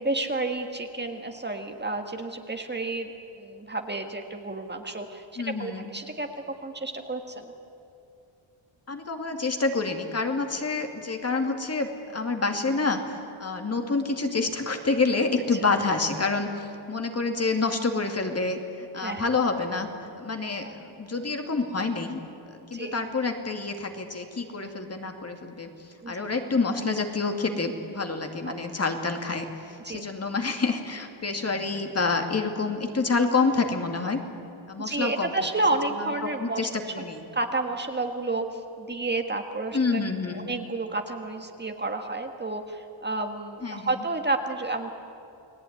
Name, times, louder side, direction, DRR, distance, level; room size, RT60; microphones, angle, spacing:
voice 1, 0.0-3.1 3.4-6.3 6.6-7.5 15.5-15.6 19.0-19.3 20.6-20.8 22.7-23.0 26.0-26.2 28.5-28.6 29.8-30.0 34.8-36.7 37.3-40.0 40.3-44.9, right 2 dB, 20° right, 5 dB, 1.6 m, -30 dB
voice 2, 5.4-5.9 8.9-19.9 20.2-22.2 22.5-25.7 26.1-34.2 34.7-35.3 36.4-37.3 39.7-40.5 43.6-43.9, left 3 dB, 30° left, 5 dB, 2.4 m, -28 dB
29.5 x 20.0 x 9.7 m, 2.7 s
wide cardioid pair, 140°, 47 cm